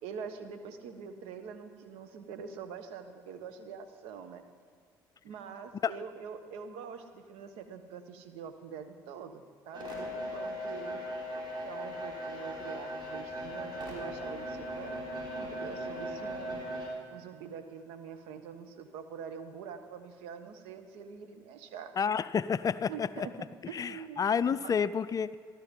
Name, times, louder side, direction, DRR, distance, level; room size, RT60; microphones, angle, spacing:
voice 1, 0.0-4.4 5.2-11.0 11.6-15.0 15.4-16.6 17.1-21.9 22.9-23.3 23.7-24.7, right 6 dB, 75° right, 8 dB, 1.3 m, -44 dB
sound 1, 9.7-16.9, equal, 50° right, 4.8 m, -38 dB
voice 2, 22.0-23.3 23.7-25.4, left 7 dB, 35° left, 14 dB, 0.5 m, -30 dB
14.5 x 13.5 x 5.4 m, 2.1 s
hypercardioid pair, 65°, 10 cm